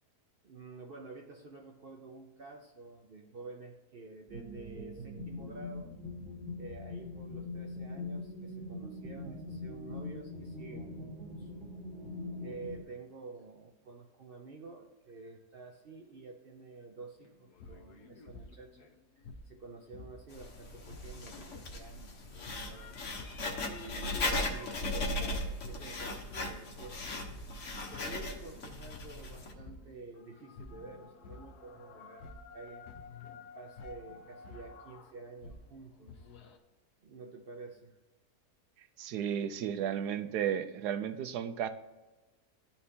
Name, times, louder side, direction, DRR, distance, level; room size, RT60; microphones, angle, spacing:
voice 1, 0.4-5.9 6.6-11.5 12.4-18.9 19.2-23.0 23.6-27.4 27.9-32.9 33.5-36.3 37.0-38.0, right 3 dB, 65° right, 2 dB, 0.5 m, -49 dB
sound 1, 4.3-12.8, left 2 dB, 5° right, 1.0 m, -42 dB
sound 2, 17.2-20.4 20.7-36.6, left 3 dB, 75° left, 1.3 m, -51 dB
Writing, 20.3-29.5, left 2 dB, 55° left, 1.2 m, -38 dB
voice 2, 39.0-41.7, right 9 dB, 80° right, 10 dB, 1.1 m, -33 dB
12.5 x 4.3 x 2.8 m, 1.1 s
omnidirectional pair, 1.7 m